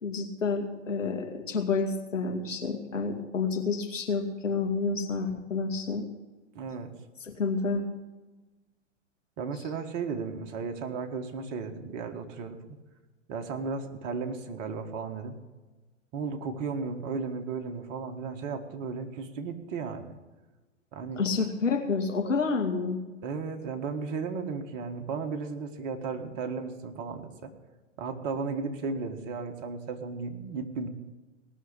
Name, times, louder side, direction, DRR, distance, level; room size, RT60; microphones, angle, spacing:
voice 1, 0.0-6.1 7.2-7.9 21.2-23.0, left 4 dB, 80° left, 3 dB, 2.4 m, -29 dB
voice 2, 6.5-6.9 9.4-12.6 13.3-15.3 16.1-20.2 20.9-21.2 23.2-27.5 28.0-30.9, right 5 dB, 35° right, 5 dB, 1.7 m, -35 dB
18.5 x 6.5 x 8.4 m, 1.2 s
figure-of-eight pair, 115°, 38 cm